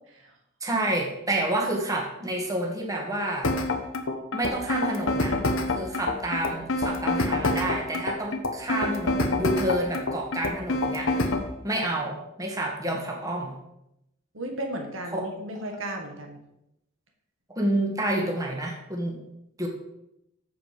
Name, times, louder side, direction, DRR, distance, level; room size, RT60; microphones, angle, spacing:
voice 1, 0.6-3.5 4.3-5.4 5.7-11.3 11.6-13.6 15.1-15.3 17.6-19.2 19.6-19.7, right 1 dB, 15° right, 0 dB, 1.8 m, -29 dB
sound 1, 3.4-11.5, left 2 dB, 85° left, 1.2 m, -26 dB
voice 2, 14.3-16.4, right 1 dB, 80° right, 3 dB, 1.7 m, -35 dB
14.5 x 5.2 x 5.2 m, 0.83 s
head